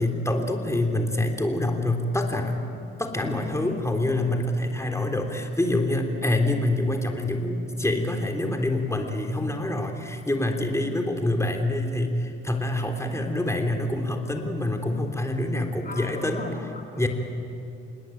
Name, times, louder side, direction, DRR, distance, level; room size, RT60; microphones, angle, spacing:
voice 1, 0.0-16.5 17.0-17.1, left 1 dB, 10° left, 3 dB, 3.5 m, -26 dB
voice 2, 3.2-3.9 4.8-5.2 13.0-13.5 15.8-17.1, left 3 dB, 30° left, 1 dB, 3.0 m, -40 dB
27.0 x 20.0 x 9.3 m, 2.6 s
hypercardioid pair, 45°, 32 cm